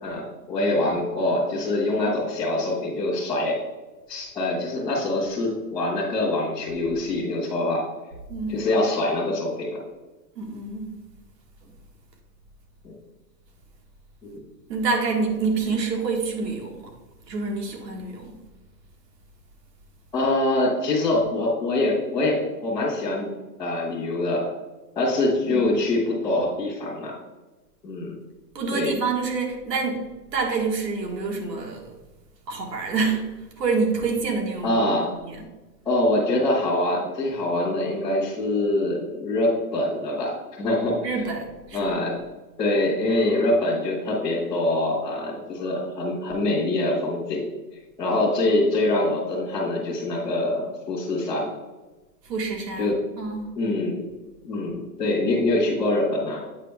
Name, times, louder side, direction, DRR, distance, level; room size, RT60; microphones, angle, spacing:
voice 1, 0.0-3.6 4.1-7.8 8.5-9.8 12.8-12.9 14.2-14.4 20.1-23.3 23.6-24.5 24.9-27.1 27.8-28.1 28.7-28.9 34.6-35.1 35.8-41.1 41.7-42.2 42.6-47.5 48.0-51.5 52.8-53.0 53.6-54.0 54.4-56.4, left 2 dB, ahead, -14 dB, 0.4 m, -24 dB
voice 2, 8.3-8.7 10.4-10.9 14.7-16.9 17.3-18.4 25.5-25.8 28.6-30.0 30.3-31.9 32.5-33.2 33.6-34.8 35.2-35.4 41.0-41.9 52.3-53.5, right 4 dB, 85° right, 2 dB, 1.8 m, -27 dB
8.2 x 5.2 x 3.4 m, 1.1 s
hypercardioid pair, 165°, 48 cm